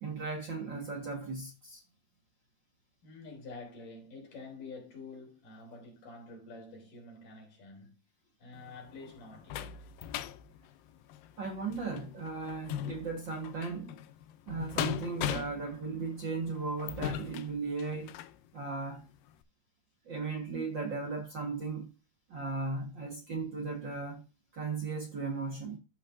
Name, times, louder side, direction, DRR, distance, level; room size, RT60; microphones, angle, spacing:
voice 1, 0.0-1.8 11.4-14.0 14.5-18.1 18.5-19.0 20.0-21.9 22.3-24.2 24.5-25.8, right 4 dB, 55° right, 1.2 m, -36 dB
voice 2, 3.0-8.0 8.4-9.9, left 3 dB, 55° left, 4.9 m, -48 dB
sound 1, 8.5-18.4 18.9-19.1 19.4-19.5, left 11 dB, 80° left, 2.1 m, -40 dB
13.5 x 5.4 x 2.6 m
omnidirectional pair, 4.6 m